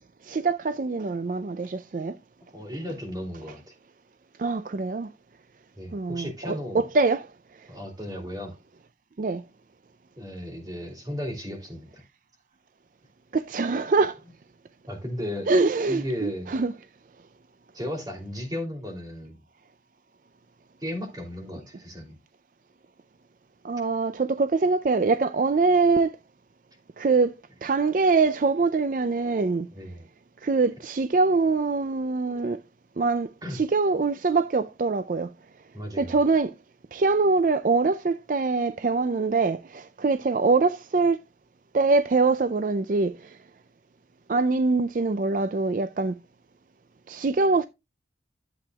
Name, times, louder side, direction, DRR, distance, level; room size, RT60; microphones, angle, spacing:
voice 1, 0.2-2.2 4.4-5.1 5.9-7.7 9.2-9.4 13.3-14.2 15.5-16.7 23.6-26.2 27.0-27.3 27.6-29.7 30.4-32.6 33.0-35.3 36.0-36.5 36.9-41.2 41.7-43.4 44.3-46.2 47.1-47.7, right 3 dB, 50° right, 0.4 m, -24 dB
voice 2, 2.5-3.6 5.8-6.9 7.7-8.6 10.2-12.0 13.6-13.7 14.9-15.5 15.9-16.5 17.7-19.4 20.8-22.2 29.7-30.1 33.4-33.6 35.7-36.2, left 1 dB, 20° right, 2.9 m, -35 dB
11.5 x 7.9 x 2.3 m
head